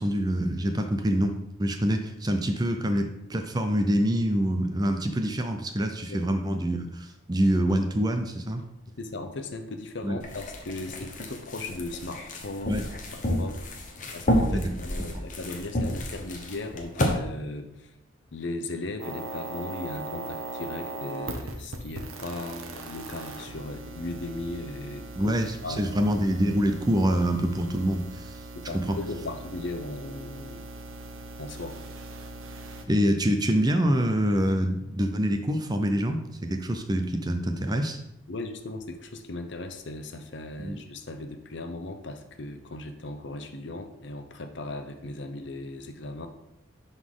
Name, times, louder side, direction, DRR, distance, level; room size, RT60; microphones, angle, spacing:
voice 1, 0.0-8.6 10.0-10.2 12.7-12.8 14.5-14.7 25.2-28.4 28.9-29.0 32.9-38.0 40.6-40.8, equal, 20° right, 5 dB, 0.6 m, -26 dB
voice 2, 9.0-12.7 13.1-13.6 14.1-17.9 18.3-25.3 25.6-26.0 28.7-30.7 31.4-31.8 38.3-46.3, left 2 dB, 60° left, 6 dB, 0.7 m, -37 dB
sound 1, 10.2-17.1, equal, 40° left, 1.0 m, -30 dB
sound 2, 19.0-32.8, right 2 dB, 90° right, 0.9 m, -40 dB
11.0 x 4.0 x 3.8 m, 0.84 s
head